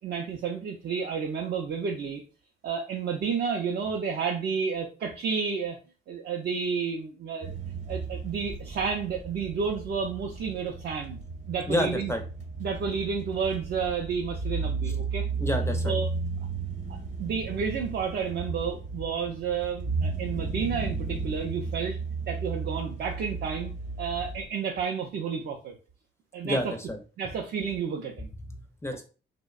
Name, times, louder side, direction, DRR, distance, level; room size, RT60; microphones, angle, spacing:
voice 1, 0.0-2.2 2.6-5.8 6.1-7.5 7.9-11.2 11.5-12.1 12.6-15.3 15.8-16.1 17.2-22.0 22.3-23.7 24.0-25.7 26.3-26.7 27.2-28.3, right 6 dB, 55° right, 2 dB, 0.4 m, -31 dB
sound 1, 7.4-24.5, right 4 dB, 35° right, 0.8 m, -34 dB
voice 2, 11.7-12.2 15.4-15.9 26.4-27.0 28.5-29.0, left 1 dB, 15° left, 5 dB, 0.4 m, -29 dB
2.7 x 2.1 x 2.3 m, 0.35 s
cardioid pair, 90°, 20 cm